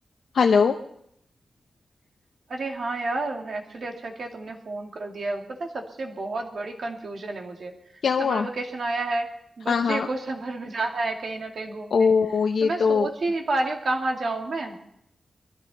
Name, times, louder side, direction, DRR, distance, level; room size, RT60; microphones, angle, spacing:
voice 1, 0.3-0.8 8.0-8.5 9.7-10.1 11.9-13.1, left 5 dB, 85° left, 4 dB, 0.7 m, -21 dB
voice 2, 2.5-7.7 8.2-9.3 9.6-12.1 12.6-14.8, right 2 dB, 60° right, 2 dB, 2.3 m, -30 dB
22.0 x 14.0 x 4.2 m, 0.74 s
wide cardioid pair, 150°, 0 cm